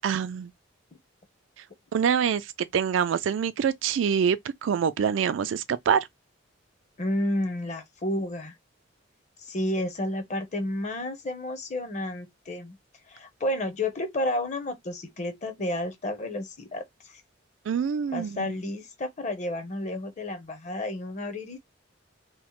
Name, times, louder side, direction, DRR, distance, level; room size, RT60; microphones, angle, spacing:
voice 1, 0.0-0.5 1.9-2.5 2.7-6.1 17.7-18.5, right 7 dB, 80° right, 0.3 m, -25 dB
voice 2, 7.0-8.5 9.4-12.8 13.1-17.2 18.1-21.6, left 1 dB, 40° left, 0.7 m, -31 dB
2.9 x 2.1 x 2.9 m
head